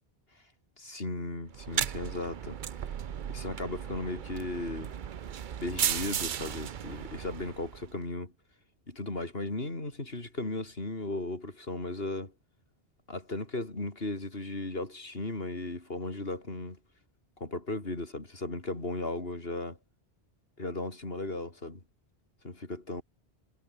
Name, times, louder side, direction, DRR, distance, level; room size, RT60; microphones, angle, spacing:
voice 1, 0.8-2.6 3.3-4.9 5.6-8.3 8.9-12.3 13.1-16.8 17.4-19.8 20.6-21.8 22.4-23.0, left 2 dB, 65° left, 4.2 m, -36 dB
sound 1, 1.5-7.9, right 8 dB, 55° right, 0.8 m, -35 dB
omnidirectional pair, 1.1 m